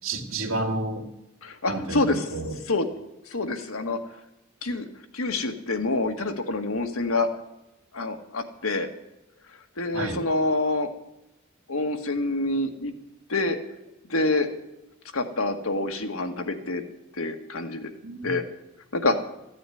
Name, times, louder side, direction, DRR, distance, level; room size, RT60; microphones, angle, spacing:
voice 1, 0.0-1.1 1.7-2.6 9.9-10.2 18.0-18.3, right 2 dB, 80° right, 3 dB, 2.4 m, -30 dB
voice 2, 1.4-2.3 2.7-2.9 3.3-4.0 4.6-4.9 5.1-7.3 7.9-8.9 9.8-10.9 11.7-12.9 13.3-13.6 14.1-14.5 15.1-16.8 17.2-17.9 18.2-18.4 18.9-19.2, left 2 dB, 90° left, 5 dB, 1.8 m, -26 dB
15.0 x 9.4 x 9.2 m, 0.91 s
head